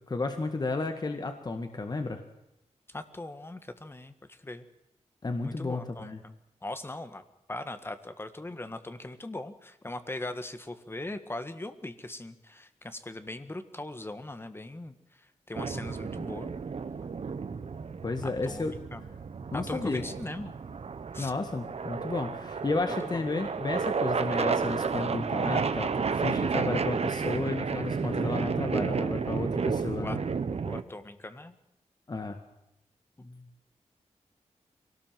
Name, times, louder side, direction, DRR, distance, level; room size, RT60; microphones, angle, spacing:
voice 1, 0.1-2.2 5.2-6.2 18.0-18.8 19.5-20.1 21.2-30.2 32.1-32.4, left 3 dB, 35° left, 6 dB, 1.8 m, -32 dB
voice 2, 2.9-4.6 5.4-6.3 6.6-16.5 18.2-19.0 19.5-20.5 21.1-21.3 23.0-23.2 30.0-30.2 30.6-31.6 33.2-33.7, left 2 dB, 20° left, 10 dB, 1.8 m, -40 dB
sound 1, 15.5-30.8, right 5 dB, 60° right, 1.3 m, -32 dB
24.0 x 18.0 x 7.6 m, 0.85 s
wide cardioid pair, 115°, 12 cm